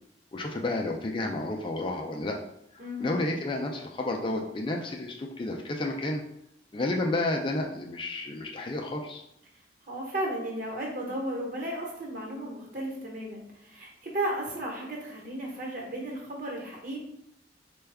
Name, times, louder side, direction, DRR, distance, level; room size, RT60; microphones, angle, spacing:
voice 1, 0.3-2.4 3.0-6.2 6.7-9.2, left 2 dB, 30° left, 1 dB, 0.4 m, -31 dB
voice 2, 2.8-3.2 9.9-17.0, right 1 dB, 50° right, -1 dB, 1.0 m, -34 dB
4.4 x 2.3 x 3.3 m, 0.76 s
head